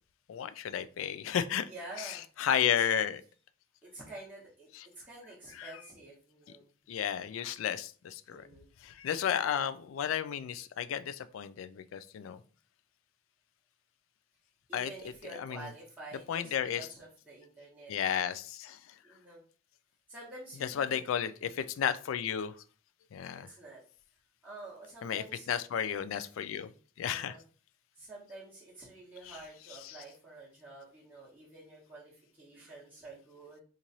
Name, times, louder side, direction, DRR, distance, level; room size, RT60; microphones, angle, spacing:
voice 1, 0.3-1.7 2.0-3.2 4.7-4.9 5.6-5.8 6.9-8.5 8.8-12.4 14.7-14.9 15.3-15.7 16.3-16.9 17.9-18.9 20.6-22.5 23.1-23.5 25.0-26.7 27.0-27.3 29.3-29.4 29.8-30.0, left 9 dB, 80° left, 13 dB, 0.3 m, -33 dB
voice 2, 1.6-2.2 2.6-2.7 3.8-4.7 4.9-6.7 8.3-8.7 14.7-18.2 19.0-19.4 20.1-21.0 23.3-23.8 24.4-25.5 27.0-27.4 28.0-33.6, right 2 dB, 10° right, -8 dB, 0.9 m, -49 dB
3.0 x 2.5 x 4.0 m, 0.40 s
head